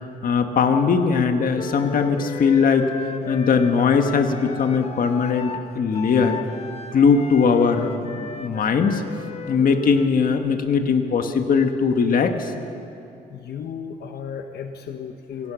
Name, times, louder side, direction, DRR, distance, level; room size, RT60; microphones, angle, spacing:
voice 1, 0.2-2.9 3.3-6.4 6.9-9.0 9.5-12.5, left 5 dB, 60° left, 6 dB, 1.6 m, -20 dB
Wind instrument woodwind instrument, 1.5-10.1, left 5 dB, 40° left, 1.3 m, -36 dB
voice 2, 13.3-15.5, left 7 dB, 85° left, 6 dB, 1.1 m, -34 dB
27.5 x 17.5 x 6.3 m, 2.8 s
wide cardioid pair, 145°, 16 cm